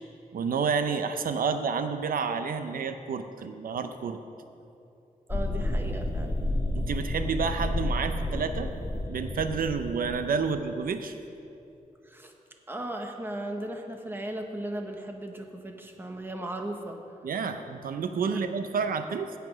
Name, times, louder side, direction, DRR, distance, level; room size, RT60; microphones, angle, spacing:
voice 1, 0.3-4.2 6.7-8.7 9.1-11.1 17.2-19.3, right 5 dB, 80° right, 9 dB, 0.6 m, -29 dB
sound 1, 5.3-10.4, left 1 dB, 25° left, 1.1 m, -31 dB
voice 2, 5.3-6.4 10.4-10.5 12.0-12.3 12.7-17.0 18.3-18.4, right 1 dB, 15° right, 3 dB, 0.9 m, -36 dB
16.5 x 5.9 x 6.2 m, 2.7 s
wide cardioid pair, 175°, 14 cm